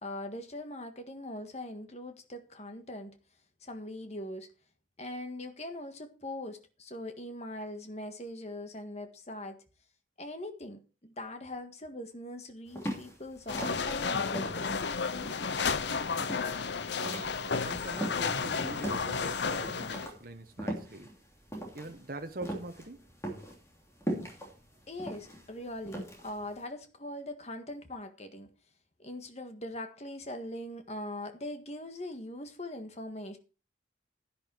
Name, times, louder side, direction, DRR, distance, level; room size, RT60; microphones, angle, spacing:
voice 1, 0.0-3.2 3.6-4.5 5.0-9.6 10.2-15.3 24.9-28.5 29.0-33.4, left 1 dB, 35° left, 1.6 m, -41 dB
sound 1, 12.7-18.4 18.8-26.6, equal, 15° left, 3.0 m, -39 dB
sound 2, 13.5-20.1, left 5 dB, 70° left, 0.7 m, -32 dB
voice 2, 16.9-21.1 21.7-23.0, right 1 dB, 50° right, 1.1 m, -43 dB
sound 3, 17.9-19.1, right 2 dB, 70° right, 0.9 m, -48 dB
11.0 x 10.5 x 4.6 m
head